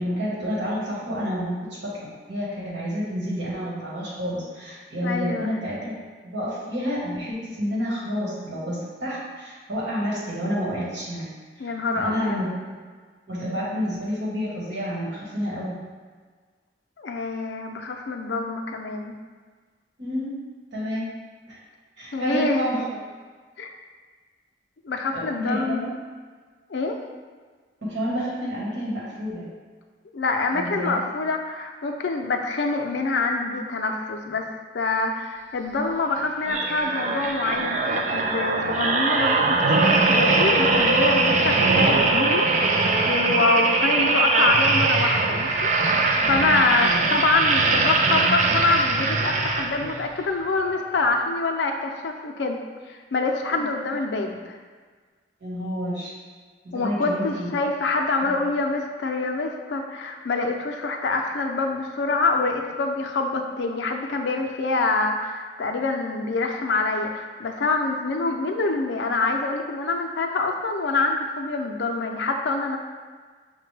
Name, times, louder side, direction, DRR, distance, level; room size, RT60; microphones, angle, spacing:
voice 1, 0.0-6.0 6.2-11.3 11.6-12.8 13.3-15.8 20.0-20.3 20.7-21.1 21.4-21.6 22.0-23.0 25.1-25.9 27.8-29.5 30.5-31.0 46.9-47.2 53.6-53.7 55.4-56.1 56.6-57.5 58.2-58.4, equal, 85° right, -7 dB, 1.4 m, -29 dB
voice 2, 5.0-5.5 11.6-12.5 17.0-19.1 22.1-22.7 23.6-23.7 24.8-25.9 26.7-27.0 30.1-34.5 34.7-45.7 46.3-52.6 52.9-54.6 56.7-72.8, left 3 dB, 85° left, 3 dB, 0.5 m, -25 dB
sound 1, 36.4-50.0 50.6-50.8, right 3 dB, 45° right, 0.3 m, -21 dB
5.9 x 2.2 x 3.2 m, 1.5 s
head